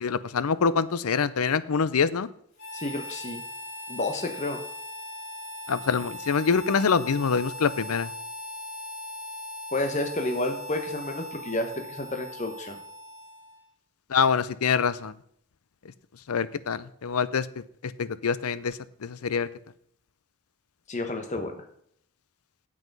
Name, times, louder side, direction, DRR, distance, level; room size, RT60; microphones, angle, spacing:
voice 1, 0.0-2.3 5.7-8.1 14.1-15.1 16.3-17.5 18.0-19.5, left 5 dB, 85° left, 17 dB, 0.6 m, -25 dB
Harmonica, 2.6-13.7, left 1 dB, 70° left, 3.7 m, -40 dB
voice 2, 2.7-3.4 3.9-4.6 9.7-12.8 20.9-21.5, left 2 dB, 35° left, 5 dB, 1.1 m, -30 dB
9.2 x 7.7 x 5.4 m, 0.67 s
head